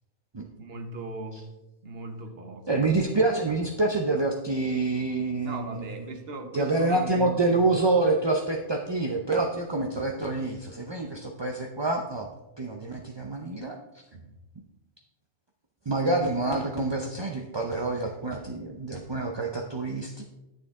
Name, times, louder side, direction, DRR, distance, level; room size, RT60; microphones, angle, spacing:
voice 1, 0.6-1.5 1.8-2.8 5.3-7.6 14.1-14.4, right 2 dB, 55° right, 5 dB, 1.1 m, -38 dB
voice 2, 2.7-6.2 6.5-12.3 12.6-13.8 15.9-20.2, right 2 dB, 30° right, 1 dB, 0.5 m, -27 dB
11.0 x 7.0 x 3.6 m, 1.0 s
omnidirectional pair, 1.3 m